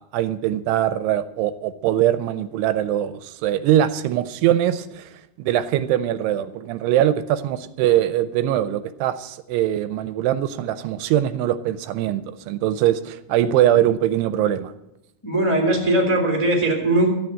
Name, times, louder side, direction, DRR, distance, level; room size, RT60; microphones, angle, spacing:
voice 1, 0.0-5.1 5.4-14.7, right 12 dB, 80° right, 13 dB, 2.5 m, -22 dB
voice 2, 15.2-17.1, right 1 dB, 20° left, 1 dB, 0.7 m, -19 dB
13.5 x 7.9 x 8.7 m, 0.88 s
omnidirectional pair, 4.9 m